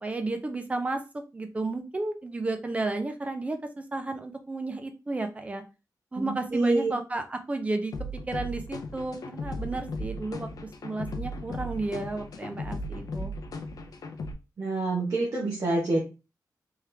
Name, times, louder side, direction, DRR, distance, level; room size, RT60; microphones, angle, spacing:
voice 1, 0.0-5.6 6.1-7.9 8.3-10.5 10.8-13.3, right 2 dB, 20° right, 7 dB, 0.5 m, -32 dB
voice 2, 6.2-6.9 14.6-16.0, right 2 dB, 50° right, -3 dB, 1.1 m, -27 dB
sound 1, 7.9-14.3, left 1 dB, 65° left, 0.6 m, -36 dB
3.6 x 3.2 x 3.3 m, 0.29 s
wide cardioid pair, 170°, 7 cm